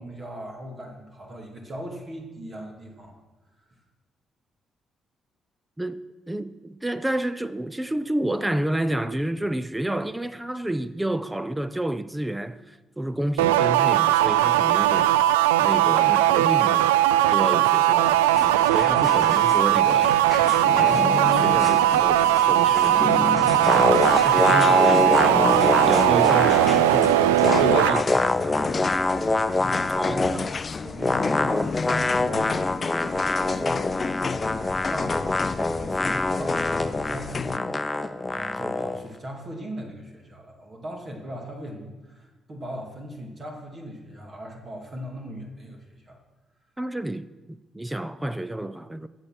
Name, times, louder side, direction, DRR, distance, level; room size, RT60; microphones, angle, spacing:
voice 1, 0.0-3.2 29.6-33.8 34.6-37.7 38.3-46.2, equal, 40° right, 2.7 m, -39 dB
voice 2, 5.8-15.3 15.6-16.9 17.3-18.3 18.7-20.2 21.3-23.9 24.2-25.5 25.9-28.6 30.0-30.3 46.8-49.1, right 1 dB, 10° right, 0.6 m, -30 dB
sound 1, 13.4-28.0, right 13 dB, 85° right, 0.3 m, -19 dB
sound 2, 18.0-37.6, left 5 dB, 40° left, 0.4 m, -32 dB
sound 3, 23.7-27.0 27.2-30.5 31.0-39.0, left 2 dB, 20° left, 0.9 m, -25 dB
15.0 x 8.0 x 6.3 m
hypercardioid pair, 45°, 0 cm